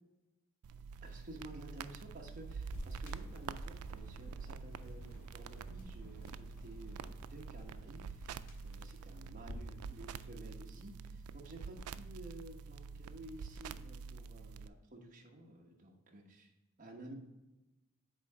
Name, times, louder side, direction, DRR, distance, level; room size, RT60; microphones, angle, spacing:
sound 1, 0.6-14.7, right 5 dB, 90° right, 0.3 m, -47 dB
voice 1, 1.0-16.5 16.8-17.2, right 1 dB, 40° right, 1 dB, 1.0 m, -53 dB
sound 2, 2.7-9.7, equal, 85° left, 2.0 m, -51 dB
8.1 x 3.2 x 4.7 m, 1.0 s
head